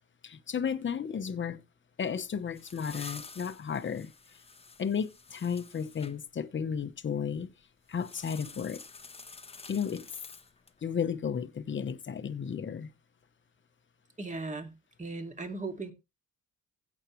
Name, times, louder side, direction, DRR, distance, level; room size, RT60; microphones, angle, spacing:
voice 1, 0.2-1.6 2.0-4.1 4.8-7.5 7.9-8.8 9.7-10.1 10.8-12.9, left 7 dB, 35° left, 0.9 m, -33 dB
sound 1, 2.2-6.1 7.9-10.8, left 4 dB, 20° left, 1.0 m, -49 dB
voice 2, 14.2-14.7 15.0-15.9, right 3 dB, 20° right, 2.3 m, -37 dB
16.0 x 7.3 x 3.1 m
cardioid pair, 120°, 33 cm